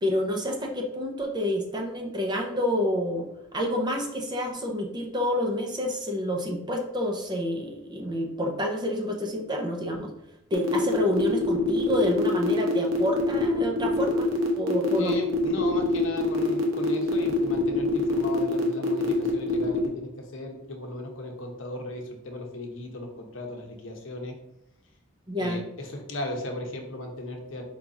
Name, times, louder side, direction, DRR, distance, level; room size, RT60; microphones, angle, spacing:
voice 1, 0.0-3.2 3.5-10.1 10.5-14.3 14.6-15.2 25.3-25.6, left 1 dB, 20° right, 1 dB, 0.6 m, -28 dB
sound 1, 10.6-19.9, left 4 dB, 85° right, 0.8 m, -25 dB
voice 2, 14.9-24.3 25.4-27.6, left 2 dB, 65° left, 2 dB, 0.8 m, -36 dB
4.6 x 2.5 x 4.0 m, 0.82 s
head